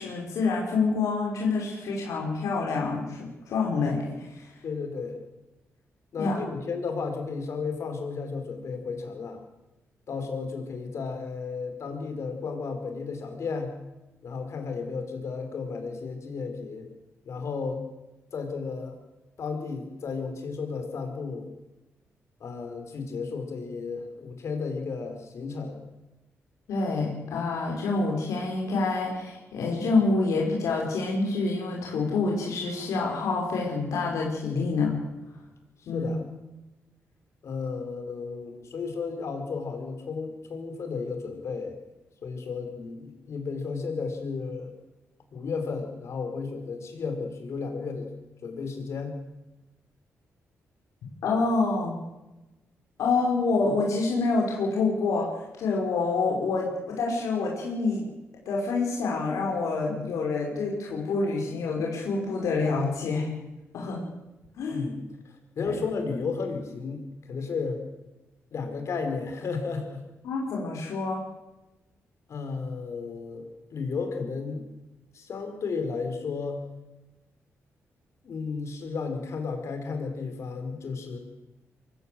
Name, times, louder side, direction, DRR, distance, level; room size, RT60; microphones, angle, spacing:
voice 1, 0.0-3.2 3.5-4.5 6.2-6.4 26.7-35.0 35.9-36.1 51.2-51.9 53.0-55.3 55.6-58.1 58.5-63.3 63.7-64.0 64.6-64.8 65.6-65.7 70.2-71.2, left 3 dB, 90° left, -2 dB, 5.6 m, -27 dB
voice 2, 4.6-5.2 6.1-9.4 10.1-13.7 14.2-16.9 17.2-17.8 18.3-19.0 19.4-21.5 22.4-25.8 35.8-36.2 37.4-41.7 42.2-44.7 45.3-48.1 48.4-49.2 64.7-67.8 68.5-70.0 72.3-74.6 75.1-76.6 78.2-81.2, left 4 dB, 65° left, 6 dB, 5.2 m, -33 dB
23.5 x 15.5 x 7.9 m, 1.0 s
cardioid pair, 90°, 5 cm